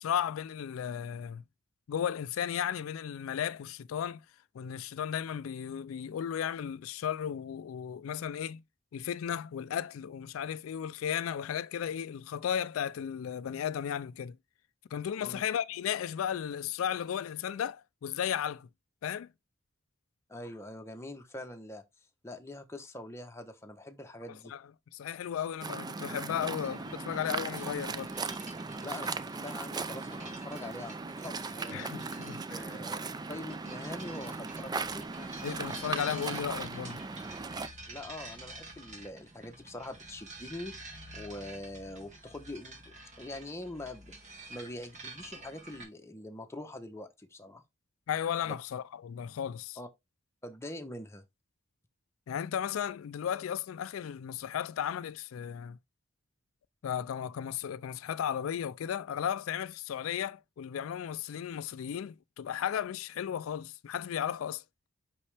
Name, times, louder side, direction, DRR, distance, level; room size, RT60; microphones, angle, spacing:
voice 1, 0.0-1.4 1.9-4.2 4.5-8.6 8.9-14.4 14.9-18.7 19.0-19.3 24.5-24.6 24.9-28.1 31.7-32.6 35.4-37.0 48.1-49.8 52.3-55.8 56.8-64.6, left 9 dB, 90° left, 0.3 m, -35 dB
voice 2, 20.3-21.8 22.2-24.5 28.8-31.9 32.5-33.0 33.3-35.3 37.9-40.8 41.1-44.1 44.5-47.6 48.4-48.6 49.8-49.9 50.4-51.2, left 1 dB, 15° left, 1.0 m, -44 dB
Waves surf, 25.6-37.7, right 4 dB, 20° right, 0.4 m, -38 dB
sound 1, 26.6-45.8, right 2 dB, 35° right, 1.9 m, -49 dB
5.5 x 5.4 x 3.3 m
head